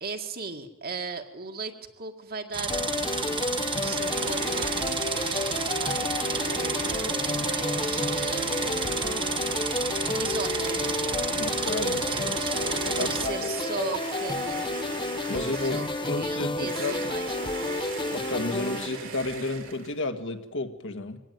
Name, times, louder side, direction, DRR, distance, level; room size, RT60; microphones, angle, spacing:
voice 1, 0.0-8.9 10.2-11.1 11.9-12.5 12.9-14.7 15.3-17.4 18.7-18.8, right 4 dB, 45° right, 5 dB, 2.1 m, -38 dB
sound 1, 2.5-13.3, right 5 dB, 25° right, 1.3 m, -31 dB
sound 2, 2.7-18.9, left 2 dB, 20° left, 0.9 m, -31 dB
sound 3, 3.8-20.1, right 3 dB, 65° right, 3.3 m, -37 dB
voice 2, 11.4-13.5 15.3-17.1 18.1-21.2, left 2 dB, 60° left, 6 dB, 1.8 m, -32 dB
23.5 x 17.5 x 9.3 m, 1.0 s
head